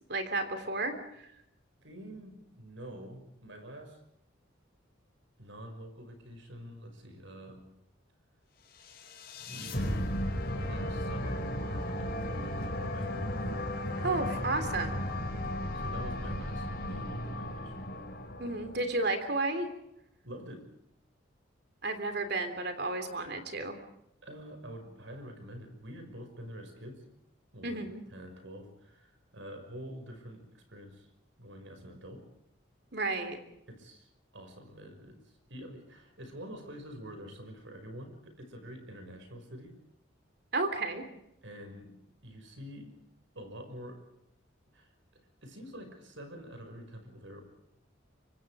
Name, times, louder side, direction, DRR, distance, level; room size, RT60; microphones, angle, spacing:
voice 1, 0.1-1.3 14.0-15.0 18.4-19.7 21.8-23.8 27.6-28.0 32.9-33.4 40.5-41.0, right 2 dB, 55° right, 8 dB, 3.4 m, -32 dB
voice 2, 1.8-4.0 5.4-7.7 9.5-13.2 15.7-17.9 20.2-20.7 24.2-27.0 27.5-31.1 31.4-32.3 33.7-34.1 34.3-39.8 41.4-42.9 43.3-44.0 44.7-47.4, equal, 70° right, 6 dB, 5.9 m, -47 dB
sound 1, 8.8-19.0, left 1 dB, 50° left, 5.7 m, -35 dB
25.5 x 24.5 x 5.0 m, 0.81 s
head